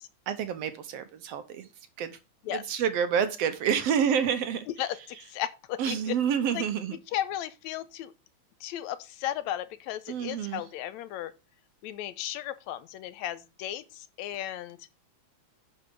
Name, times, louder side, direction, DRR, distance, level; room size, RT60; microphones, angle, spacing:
voice 1, 0.3-1.7 2.0-2.2 2.5-4.7 5.8-7.0 10.1-10.6, right 8 dB, 70° right, 1.8 m, -28 dB
voice 2, 5.3-6.2 6.5-6.6 7.1-8.1 8.6-11.3 11.8-14.8, left 12 dB, 80° left, 1.9 m, -35 dB
10.0 x 5.6 x 5.2 m
omnidirectional pair, 3.3 m